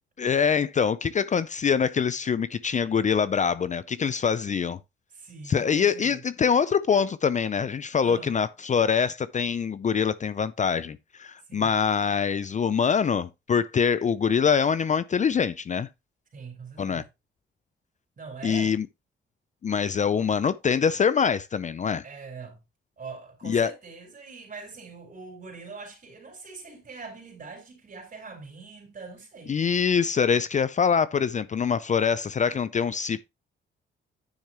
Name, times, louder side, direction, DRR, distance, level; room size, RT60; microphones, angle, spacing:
voice 1, 0.2-4.8 5.5-15.9 16.8-17.0 18.4-18.9 19.6-22.0 23.4-23.7 29.5-33.3, left 6 dB, 35° left, 0.5 m, -24 dB
voice 2, 5.1-6.2 8.0-8.3 11.5-11.7 16.3-17.1 18.2-18.7 22.0-22.6 23.0-29.6, right 4 dB, 40° right, 4.3 m, -42 dB
10.5 x 6.4 x 2.9 m
cardioid pair, 105°, 21 cm